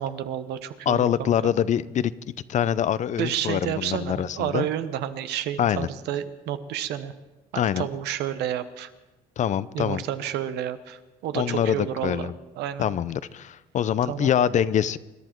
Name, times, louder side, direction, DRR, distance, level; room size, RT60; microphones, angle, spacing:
voice 1, 0.0-1.3 3.2-7.1 7.5-8.9 9.7-12.8 14.1-14.3, right 10 dB, 80° right, 11 dB, 1.0 m, -30 dB
voice 2, 0.9-2.1 2.5-4.7 5.6-5.9 7.6-7.9 9.4-10.0 11.3-12.3 12.8-15.0, left 9 dB, 45° left, 17 dB, 0.5 m, -24 dB
25.5 x 11.5 x 4.5 m, 1.1 s
cardioid pair, 110°, 17 cm